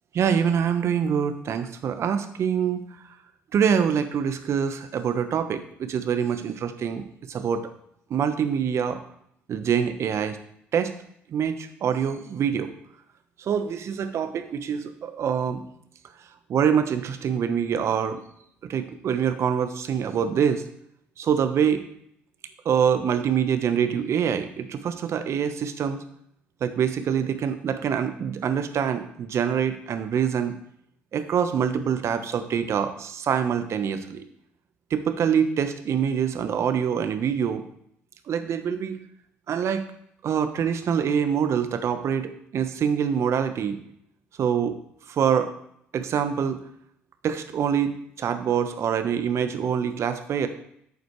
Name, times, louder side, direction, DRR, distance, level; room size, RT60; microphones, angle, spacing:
voice 1, 0.1-2.8 3.5-7.6 8.1-9.0 9.5-10.4 10.7-10.9 11.3-12.7 13.4-15.6 16.5-18.2 18.7-20.6 21.2-21.8 22.6-26.0 26.6-30.5 31.1-34.2 34.9-37.6 38.3-39.0 39.5-39.8 40.2-43.8 44.4-44.8 45.1-45.5 45.9-46.6 47.2-50.5, right 7 dB, 55° right, 9 dB, 1.1 m, -25 dB
11.5 x 8.0 x 3.3 m, 0.71 s
hypercardioid pair, 55°, 6 cm